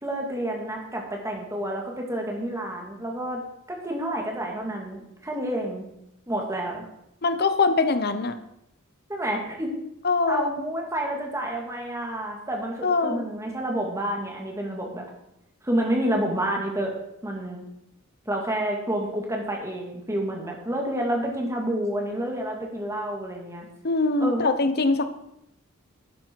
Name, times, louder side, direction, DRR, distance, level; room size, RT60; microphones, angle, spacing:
voice 1, 0.0-3.4 3.7-5.8 6.3-6.8 9.1-9.8 10.3-15.1 15.6-17.0 17.2-17.7 18.3-23.7 24.2-24.5, right 1 dB, 15° right, 0 dB, 2.3 m, -29 dB
voice 2, 7.2-8.4 10.0-10.5 12.8-13.2 23.8-25.0, left 3 dB, 50° left, 10 dB, 1.0 m, -23 dB
11.5 x 9.6 x 4.7 m, 0.82 s
head